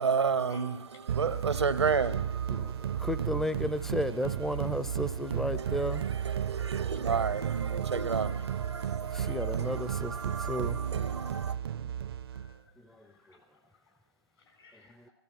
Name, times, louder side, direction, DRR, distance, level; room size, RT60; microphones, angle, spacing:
voice 1, 0.0-0.8 1.1-3.1 5.6-11.6, right 5 dB, 90° right, 1.0 m, -32 dB
sound 1, 1.1-12.6, right 9 dB, 65° right, 0.6 m, -33 dB
voice 2, 2.5-6.0 9.1-10.8 13.0-13.1, equal, ahead, 0.5 m, -33 dB
voice 3, 6.4-7.1 7.4-8.0 8.6-9.3 11.2-15.1, left 3 dB, 75° left, 7.0 m, -63 dB
16.5 x 14.0 x 5.9 m
hypercardioid pair, 125°, 14 cm